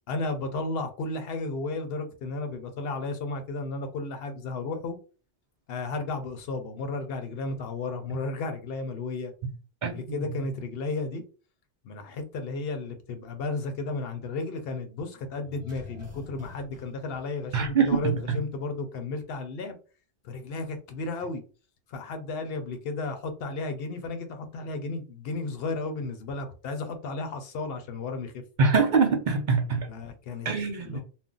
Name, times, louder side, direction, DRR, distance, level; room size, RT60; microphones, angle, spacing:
voice 1, 0.1-5.0 5.7-9.3 9.8-11.2 11.8-19.8 20.2-21.4 21.9-28.4 29.9-30.5 30.8-31.0, left 3 dB, 65° left, 0.8 m, -33 dB
voice 2, 9.8-10.4 17.5-18.4 28.6-29.9 30.4-31.0, right 5 dB, 55° right, 0.5 m, -24 dB
sound 1, 15.4-18.2 18.5-18.6, left 3 dB, 15° right, 0.8 m, -47 dB
2.5 x 2.1 x 3.7 m
omnidirectional pair, 1.2 m